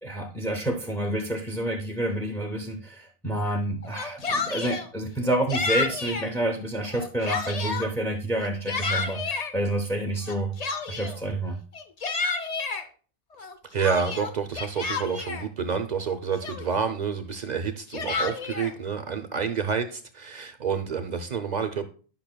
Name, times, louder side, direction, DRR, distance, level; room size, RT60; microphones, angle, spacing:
voice 1, 0.0-10.5 10.9-11.6, right 1 dB, 5° left, 2 dB, 0.5 m, -28 dB
Yell, 3.8-4.9 5.5-6.3 6.8-7.9 8.4-9.5 10.2-11.2 11.7-12.8 13.4-15.5 16.0-16.1 16.4-16.9 17.7-18.7, left 4 dB, 45° left, 0.6 m, -30 dB
voice 2, 13.7-21.9, right 6 dB, 50° right, 7 dB, 0.6 m, -29 dB
10.5 x 5.5 x 2.2 m, 0.40 s
omnidirectional pair, 1.1 m